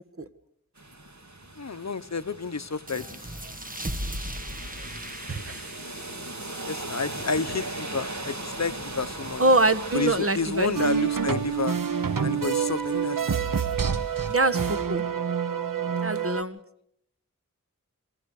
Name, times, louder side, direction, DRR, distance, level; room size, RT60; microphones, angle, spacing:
sound 1, 0.8-14.8, right 2 dB, 60° right, 4.0 m, -40 dB
voice 1, 1.6-3.2 6.6-9.4 9.9-11.8 12.2-13.5, left 4 dB, 55° left, 14 dB, 0.9 m, -30 dB
sound 2, 2.9-8.1, right 1 dB, 25° right, 2.1 m, -38 dB
voice 2, 5.3-5.7 9.4-10.8 14.3-15.0 16.0-16.6, right 2 dB, 45° right, 11 dB, 1.6 m, -24 dB
sound 3, 10.7-16.4, right 7 dB, 80° right, 1.1 m, -27 dB
28.0 x 24.0 x 4.9 m, 0.74 s
wide cardioid pair, 65°, 33 cm